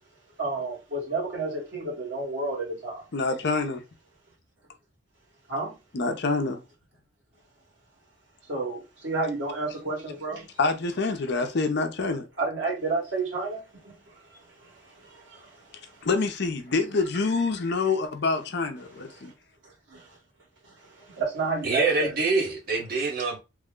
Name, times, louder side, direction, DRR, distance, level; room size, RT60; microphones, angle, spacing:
voice 1, 0.4-3.0 5.5-5.8 8.5-10.6 12.4-16.1 18.8-19.3 19.6-20.2 20.6-22.1, right 3 dB, 65° right, 1.8 m, -32 dB
voice 2, 3.1-3.8 5.9-6.6 10.6-12.3 16.0-19.3, left 3 dB, 60° left, 0.6 m, -26 dB
voice 3, 21.6-23.4, right 3 dB, 50° right, 1.1 m, -25 dB
3.1 x 2.2 x 3.7 m
head